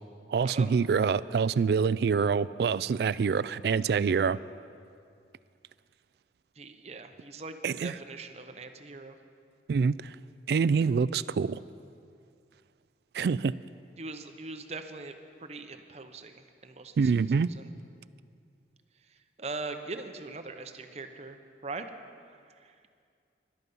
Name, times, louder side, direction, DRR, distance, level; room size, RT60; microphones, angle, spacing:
voice 1, 0.3-4.4 7.6-7.9 9.7-10.1 10.5-11.6 13.1-13.6 17.0-17.5, right 5 dB, 60° right, 18 dB, 0.3 m, -26 dB
voice 2, 6.6-9.2 14.0-15.2 15.4-17.7 19.4-21.8 22.6-22.7, right 3 dB, 35° right, 7 dB, 0.8 m, -41 dB
14.0 x 12.0 x 5.4 m, 2.3 s
head